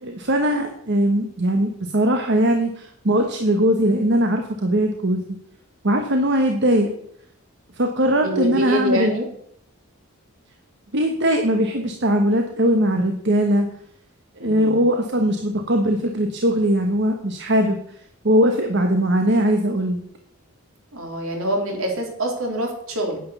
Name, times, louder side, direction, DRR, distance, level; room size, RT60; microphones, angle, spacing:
voice 1, 0.0-5.2 5.8-6.9 7.7-9.1 10.9-13.7 14.4-17.8 18.2-20.0, equal, 55° right, 4 dB, 1.2 m, -20 dB
voice 2, 8.1-9.2 14.4-14.8 20.9-23.2, equal, 70° right, 1 dB, 3.6 m, -25 dB
9.8 x 9.2 x 7.1 m, 0.69 s
head